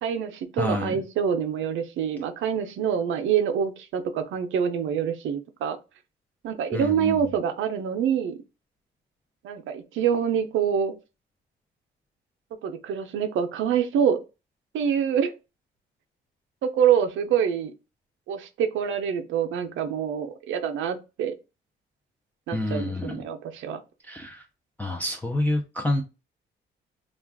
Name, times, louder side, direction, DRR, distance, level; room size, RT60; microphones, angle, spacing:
voice 1, 0.0-5.8 6.4-8.4 9.4-10.9 12.6-14.2 14.7-15.3 16.6-17.7 18.3-21.3 22.5-23.8, right 8 dB, 75° right, 0.5 m, -26 dB
voice 2, 0.6-1.0 6.7-7.2 22.5-23.2 24.0-24.4 24.8-26.0, left 1 dB, 10° left, 0.4 m, -28 dB
2.4 x 2.3 x 3.3 m
cardioid pair, 90°, 20 cm